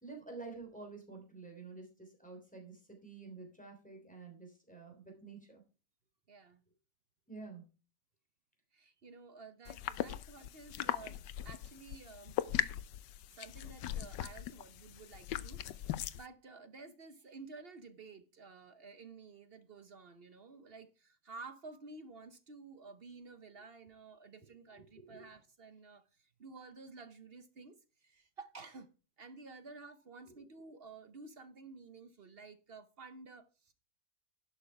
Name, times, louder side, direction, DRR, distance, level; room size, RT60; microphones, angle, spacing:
voice 1, 0.0-5.6 7.3-7.6 25.1-25.2, right 4 dB, 5° left, 3.3 m, -49 dB
voice 2, 6.3-6.6 8.7-12.4 13.3-28.9 29.2-33.7, right 4 dB, 45° right, 0.8 m, -52 dB
sound 1, 9.7-16.2, left 12 dB, 80° left, 1.3 m, -39 dB
11.5 x 6.4 x 4.6 m
omnidirectional pair, 1.9 m